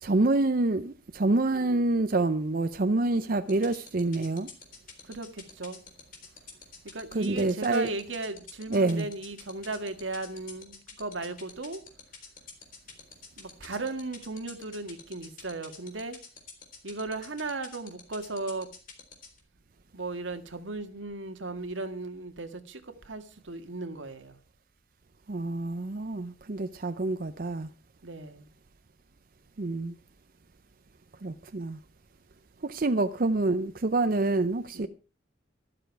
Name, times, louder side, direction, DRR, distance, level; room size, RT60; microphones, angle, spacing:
voice 1, 0.0-4.5 7.1-7.9 8.7-9.1 25.3-27.7 29.6-30.0 31.2-31.8 32.6-34.9, right 2 dB, 50° right, 0.6 m, -27 dB
sound 1, 3.5-19.4, left 6 dB, 45° left, 3.8 m, -46 dB
voice 2, 5.0-5.8 6.9-11.8 13.4-16.2 16.8-18.7 19.9-24.4 28.0-28.5, right 2 dB, 90° right, 1.8 m, -36 dB
13.0 x 12.5 x 4.6 m
head